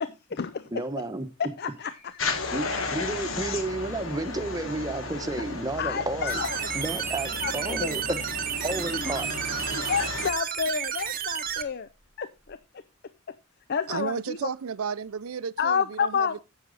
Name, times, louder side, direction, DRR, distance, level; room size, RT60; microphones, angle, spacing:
voice 1, 0.0-0.7 1.4-2.5 5.8-6.7 7.4-8.0 9.7-11.9 12.2-12.6 13.7-14.5 15.6-16.4, left 6 dB, 50° left, 0.5 m, -30 dB
voice 2, 0.7-1.3 2.5-6.4 6.7-8.2 8.6-9.3, right 2 dB, 20° right, 1.0 m, -31 dB
Bird vocalization bird call bird song, 1.5-13.3 15.0-15.2, left 2 dB, 25° left, 3.7 m, -56 dB
sound 1, 2.2-10.3, left 3 dB, 70° left, 1.6 m, -34 dB
sound 2, 6.3-11.6, right 8 dB, 45° right, 0.9 m, -32 dB
voice 3, 13.9-16.4, right 6 dB, 90° right, 0.5 m, -33 dB
10.0 x 7.3 x 3.9 m
head